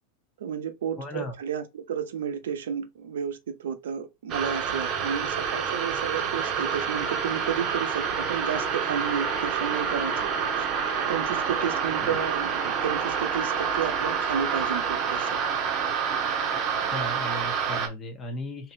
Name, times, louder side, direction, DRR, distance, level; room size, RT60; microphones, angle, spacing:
voice 1, 0.4-10.3 10.6-10.7 11.1-15.4, right 8 dB, 70° right, 0.7 m, -32 dB
voice 2, 1.0-1.3 11.5-11.7 12.0-12.2 16.9-18.7, left 1 dB, 30° left, 1.2 m, -36 dB
sound 1, 4.3-17.9, right 6 dB, 40° right, 0.9 m, -28 dB
3.2 x 2.9 x 2.6 m
hypercardioid pair, 90°, 0 cm